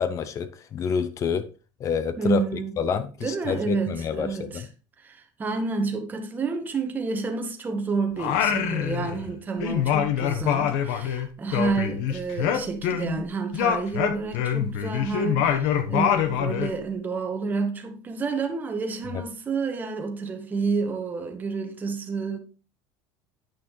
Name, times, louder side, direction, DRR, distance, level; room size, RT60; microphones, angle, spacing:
voice 1, 0.0-1.5 1.8-4.7 19.1-19.2, left 7 dB, 35° left, 0.6 m, -28 dB
voice 2, 2.2-2.7 3.2-4.6 5.0-22.4, right 4 dB, 20° right, 1.0 m, -29 dB
Singing, 8.2-9.3 9.6-13.2 13.5-16.8, left 9 dB, 80° left, 0.9 m, -25 dB
9.0 x 6.0 x 3.0 m
cardioid pair, 145°, 9 cm